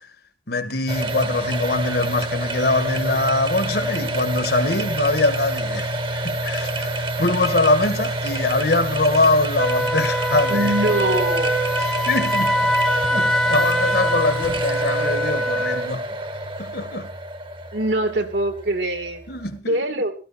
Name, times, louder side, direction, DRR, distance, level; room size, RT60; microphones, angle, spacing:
voice 1, 0.5-10.8 11.8-12.7 13.1-16.0 16.6-17.1 19.3-19.8, left 2 dB, 60° left, 1.7 m, -23 dB
sound 1, 0.9-19.6, right 1 dB, 30° right, 1.2 m, -27 dB
Wind instrument woodwind instrument, 9.6-15.9, equal, ahead, 0.8 m, -23 dB
voice 2, 10.5-11.6 17.7-19.2 19.7-20.1, right 1 dB, 70° right, 2.7 m, -23 dB
17.5 x 13.5 x 4.3 m
head